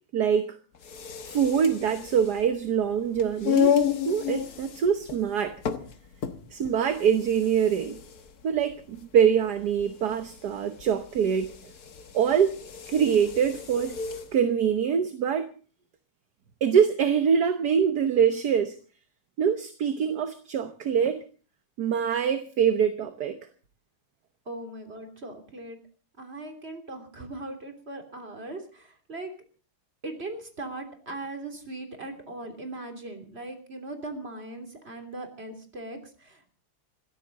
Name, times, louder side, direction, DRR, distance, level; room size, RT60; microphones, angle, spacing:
voice 1, 0.1-0.6 1.3-5.6 6.5-8.0 8.4-11.5 12.1-12.6 12.9-14.0 14.3-15.5 16.6-18.8 19.4-21.2 21.8-23.4, right 7 dB, 55° right, 1.4 m, -24 dB
sound 1, 0.7-14.3, left 8 dB, 50° left, 1.6 m, -32 dB
voice 2, 24.5-25.8 26.2-29.3 30.0-36.5, right 2 dB, 30° right, 3.4 m, -39 dB
26.0 x 14.0 x 4.0 m
omnidirectional pair, 2.3 m